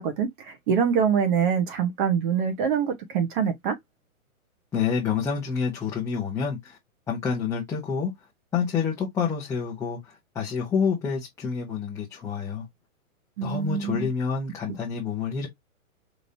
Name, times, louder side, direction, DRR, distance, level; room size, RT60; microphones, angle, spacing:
voice 1, 0.0-3.8 13.4-14.1, right 7 dB, 35° right, 1.3 m, -25 dB
voice 2, 4.7-6.8 7.1-8.1 8.5-12.7 13.4-15.5, left 6 dB, 5° left, 0.8 m, -28 dB
5.2 x 3.0 x 2.7 m
hypercardioid pair, 155°, 43 cm